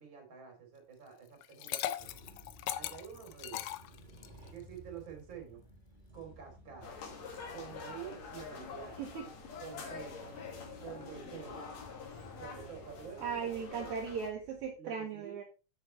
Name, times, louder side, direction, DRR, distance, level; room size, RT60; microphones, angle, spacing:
voice 1, 0.0-2.1 2.8-3.6 4.5-5.6 6.1-7.0 7.5-9.1 9.6-10.4 10.8-11.6 12.4-13.9 14.8-15.4, right 8 dB, 35° right, 3 dB, 3.5 m, -48 dB
Liquid, 1.4-4.5, left 13 dB, 80° left, 1.8 m, -39 dB
sound 1, 2.0-14.7, equal, 15° right, 3.5 m, -56 dB
sound 2, 6.8-14.3, left 5 dB, 60° left, 3.0 m, -46 dB
voice 2, 13.2-15.4, right 6 dB, 70° right, 0 dB, 2.6 m, -38 dB
7.9 x 6.7 x 4.3 m, 0.32 s
omnidirectional pair, 3.7 m